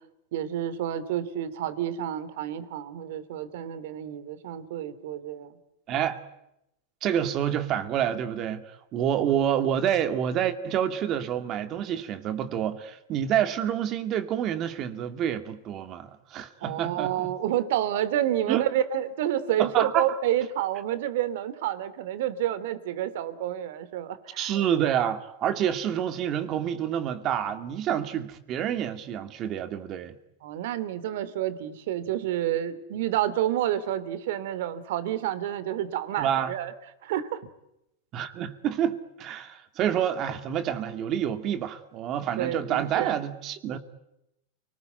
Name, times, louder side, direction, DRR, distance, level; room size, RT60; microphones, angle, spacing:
voice 1, 0.3-5.6 16.6-24.5 30.4-36.7 37.0-37.4 42.4-43.2, right 11 dB, 70° right, 3.0 m, -29 dB
voice 2, 5.9-6.2 7.0-17.3 18.5-18.6 19.6-20.2 24.4-30.1 36.2-36.5 38.1-43.8, right 9 dB, 35° right, 2.3 m, -28 dB
29.0 x 20.0 x 9.3 m
supercardioid pair, 145°, 0 cm